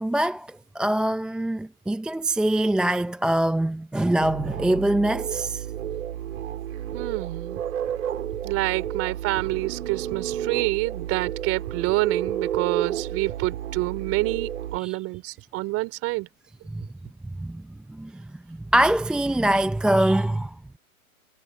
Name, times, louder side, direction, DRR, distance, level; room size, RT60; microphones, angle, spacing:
voice 1, 0.0-5.7 14.8-15.0 17.4-17.6 17.9-20.5, right 1 dB, ahead, 0.7 m, -24 dB
sound 1, 4.2-14.8, right 10 dB, 65° right, 4.0 m, -31 dB
voice 2, 6.9-7.6 8.4-16.3, right 21 dB, 30° right, 3.8 m, -27 dB
hypercardioid pair, 120°, 43 cm